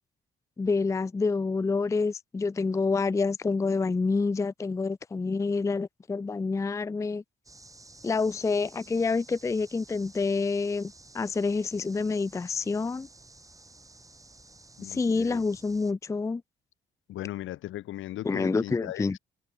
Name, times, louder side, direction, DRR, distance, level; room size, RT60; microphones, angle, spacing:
voice 1, 0.6-7.2 8.0-13.1 14.8-16.4 18.2-19.2, left 4 dB, 15° left, 0.4 m, -28 dB
sound 1, 7.4-15.9, right 2 dB, 15° right, 5.4 m, -53 dB
voice 2, 14.8-15.5 17.1-19.2, left 14 dB, 80° left, 1.7 m, -38 dB
cardioid pair, 90°, 20 cm